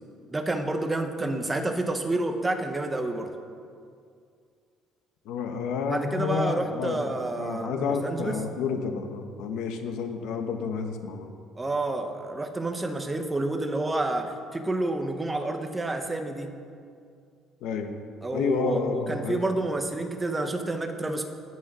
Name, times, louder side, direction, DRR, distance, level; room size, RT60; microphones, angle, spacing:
voice 1, 0.3-3.3 5.9-8.3 11.6-16.5 18.2-21.3, right 2 dB, 15° right, 6 dB, 0.9 m, -29 dB
voice 2, 5.2-11.3 17.6-17.9 18.3-19.4, left 5 dB, 80° left, 5 dB, 1.2 m, -30 dB
18.0 x 6.4 x 6.1 m, 2.3 s
cardioid pair, 160°, 0 cm